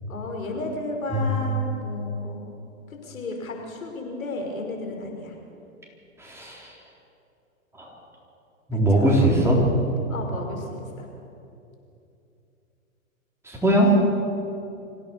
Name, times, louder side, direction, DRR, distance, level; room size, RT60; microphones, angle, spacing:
voice 1, 0.1-2.6 2.9-5.4 8.9-9.4 10.1-11.1, left 2 dB, 80° left, 2 dB, 5.6 m, -34 dB
voice 2, 6.2-6.8 7.7-7.9 8.7-9.6 13.4-13.9, right 1 dB, 5° right, -3 dB, 3.9 m, -21 dB
25.0 x 16.0 x 7.0 m, 2.7 s
hypercardioid pair, 130°, 41 cm